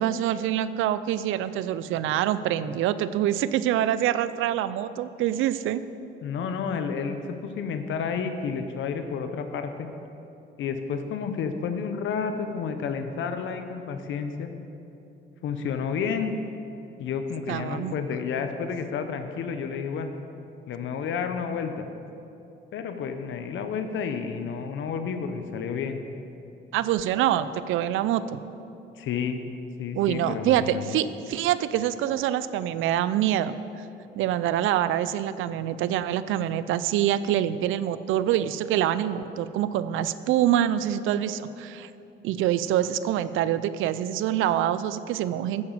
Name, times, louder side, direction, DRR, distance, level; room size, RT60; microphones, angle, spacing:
voice 1, 0.0-5.8 17.5-17.9 26.7-28.4 29.9-33.8 34.2-41.9 42.2-45.6, right 11 dB, 85° right, 14 dB, 0.4 m, -25 dB
voice 2, 6.2-9.9 10.6-14.5 15.4-16.3 17.0-20.1 20.7-21.9 22.7-26.0 29.0-29.4 29.8-31.0, left 6 dB, 75° left, 7 dB, 0.7 m, -30 dB
9.5 x 6.9 x 7.2 m, 2.8 s
cardioid pair, 90°, 20 cm